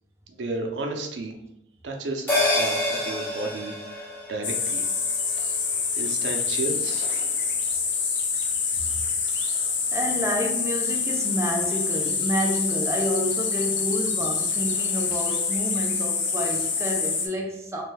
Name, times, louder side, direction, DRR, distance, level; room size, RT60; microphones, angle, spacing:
voice 1, 0.3-1.3 1.8-4.8 6.0-7.2, right 2 dB, 70° right, 2 dB, 0.6 m, -33 dB
sound 1, 2.3-7.0 7.3-7.4, left 2 dB, 10° left, 0.8 m, -29 dB
sound 2, 4.4-17.3, left 5 dB, 75° left, 0.5 m, -26 dB
voice 2, 9.9-17.8, equal, 15° right, 0 dB, 0.5 m, -29 dB
3.2 x 2.2 x 3.2 m, 0.81 s
head